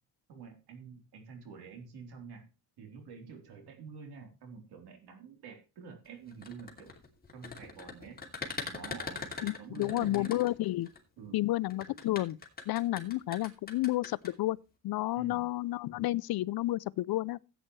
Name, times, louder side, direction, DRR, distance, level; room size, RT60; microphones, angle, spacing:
voice 1, 0.3-2.5 2.8-6.9 7.3-8.2 8.7-10.4 11.2-11.5 15.1-15.5, right 5 dB, 80° right, 3.8 m, -48 dB
sound 1, 6.3-11.0 11.7-14.3, left 4 dB, 25° left, 2.7 m, -41 dB
voice 2, 9.4-10.9 11.3-12.4 12.7-14.6 14.8-17.4, left 17 dB, 70° left, 0.5 m, -31 dB
15.5 x 8.9 x 3.2 m
cardioid pair, 135°, 38 cm